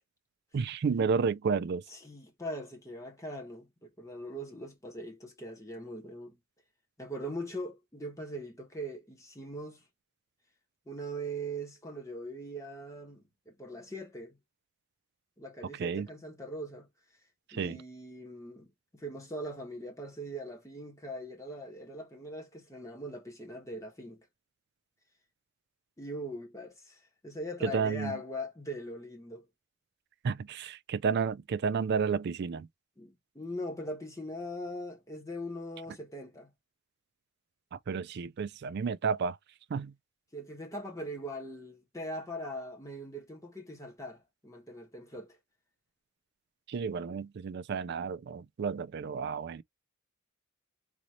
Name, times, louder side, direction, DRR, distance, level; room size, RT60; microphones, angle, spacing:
voice 1, 0.5-1.8 15.8-16.1 17.5-17.8 27.6-28.2 30.2-32.7 37.7-39.4 39.7-39.9 46.7-49.6, right 5 dB, 50° right, 0.3 m, -31 dB
voice 2, 1.9-6.4 7.0-9.8 10.9-14.4 15.4-16.9 17.5-24.3 26.0-29.4 33.0-36.5 40.3-45.4, equal, 15° left, 1.2 m, -41 dB
4.0 x 2.6 x 3.0 m
head